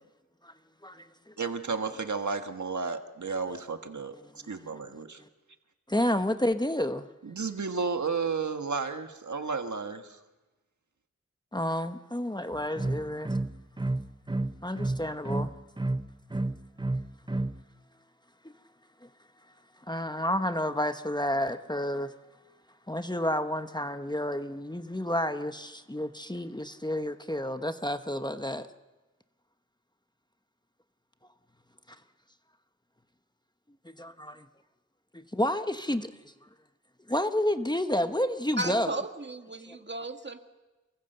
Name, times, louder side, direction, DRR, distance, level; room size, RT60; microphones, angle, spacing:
voice 1, 0.8-1.3 4.4-4.5 5.9-7.1 11.5-13.3 14.6-15.5 19.0-19.1 19.9-22.1 22.9-28.7 34.0-34.5 35.1-36.1 37.1-39.0, left 1 dB, 15° left, 9 dB, 0.9 m, -30 dB
voice 2, 1.4-4.2 4.5-5.2 7.2-10.2, right 5 dB, 80° right, 7 dB, 1.6 m, -32 dB
sound 1, 12.5-17.6, right 2 dB, 15° right, 0.7 m, -30 dB
voice 3, 38.6-40.4, right 2 dB, 40° right, 6 dB, 1.9 m, -35 dB
28.0 x 23.5 x 6.8 m, 1.2 s
wide cardioid pair, 70°, 29 cm